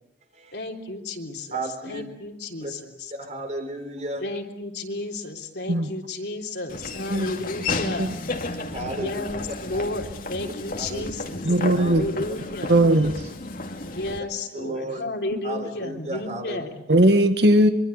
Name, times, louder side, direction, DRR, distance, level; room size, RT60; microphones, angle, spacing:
voice 1, 0.5-3.1 4.2-8.1 8.9-11.4 11.7-12.8 13.9-16.7, left 2 dB, 70° left, 3 dB, 3.5 m, -32 dB
voice 2, 1.5-2.0 2.6-2.7 3.1-4.2 8.7-9.8 10.4-11.9 14.5-15.0 15.4-16.6, right 1 dB, 40° right, 6 dB, 4.2 m, -34 dB
Laughter / Walk footsteps, 6.7-14.2, left 3 dB, 50° left, 2.4 m, -33 dB
voice 3, 11.4-12.0 12.7-13.1 16.9-17.7, right 1 dB, 65° right, 8 dB, 1.9 m, -18 dB
24.5 x 24.5 x 8.2 m, 0.79 s
head